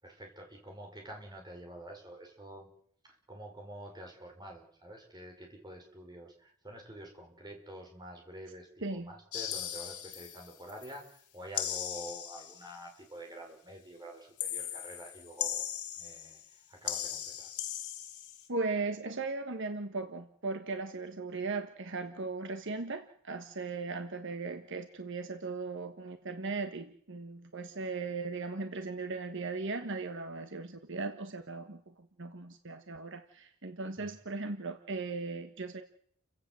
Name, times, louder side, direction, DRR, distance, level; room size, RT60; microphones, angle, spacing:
voice 1, 0.0-2.7 3.0-15.7 16.0-17.5 34.0-34.2, right 1 dB, 20° right, 2 dB, 5.5 m, -48 dB
sound 1, 9.3-11.0 11.5-12.7 14.4-16.5 16.8-18.5, left 11 dB, 85° left, 3.3 m, -38 dB
voice 2, 18.5-35.8, right 3 dB, 55° right, 8 dB, 1.4 m, -38 dB
30.0 x 16.0 x 7.7 m, 0.65 s
head